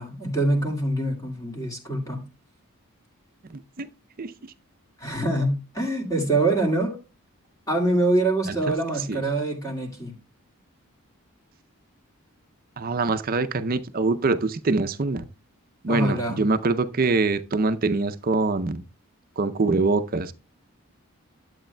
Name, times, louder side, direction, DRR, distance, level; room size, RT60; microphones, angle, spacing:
voice 1, 0.0-2.2 5.0-7.0 7.7-10.1 15.9-16.4, right 2 dB, 15° left, 1.9 m, -25 dB
voice 2, 12.8-15.3 15.8-18.8 19.4-20.3, right 3 dB, 40° right, 0.5 m, -24 dB
11.5 x 8.0 x 2.2 m
head